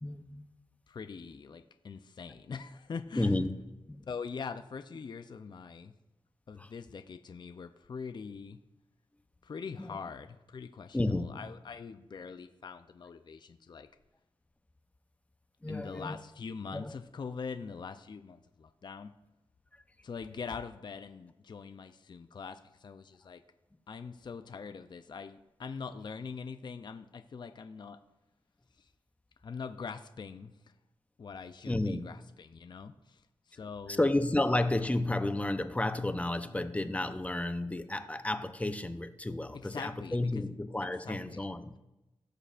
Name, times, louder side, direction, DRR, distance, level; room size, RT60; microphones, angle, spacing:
voice 1, 0.0-0.5 3.2-3.5 3.9-4.1 6.5-6.7 10.9-11.3 15.6-16.2 16.7-16.9 31.7-32.0 33.9-41.8, left 2 dB, 15° left, 10 dB, 0.7 m, -31 dB
voice 2, 0.9-3.4 4.1-5.9 6.5-8.6 9.4-13.9 15.7-19.1 20.0-23.4 23.9-28.0 28.7-28.9 29.4-30.8 31.2-34.1 39.5-40.5 41.0-41.5, left 5 dB, 50° left, 9 dB, 0.5 m, -43 dB
17.5 x 6.6 x 2.5 m, 0.98 s
cardioid pair, 70°, 10 cm